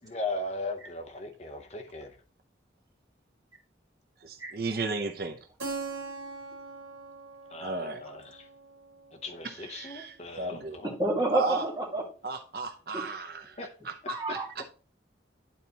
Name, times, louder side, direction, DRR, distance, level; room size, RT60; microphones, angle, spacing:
voice 1, 0.1-2.2 7.5-8.5 9.1-11.0 13.6-13.7 14.0-14.4, left 2 dB, 35° left, 0.7 m, -38 dB
voice 2, 4.2-5.4 7.6-8.0 9.6-10.8 11.3-11.6 12.2-13.6 13.8-14.6, right 3 dB, 55° right, 0.7 m, -34 dB
Keyboard (musical), 5.6-10.1, right 3 dB, 75° right, 1.5 m, -42 dB
voice 3, 11.0-12.0 12.9-13.1 14.1-14.6, right 1 dB, 20° right, 1.7 m, -29 dB
11.0 x 4.0 x 2.9 m
head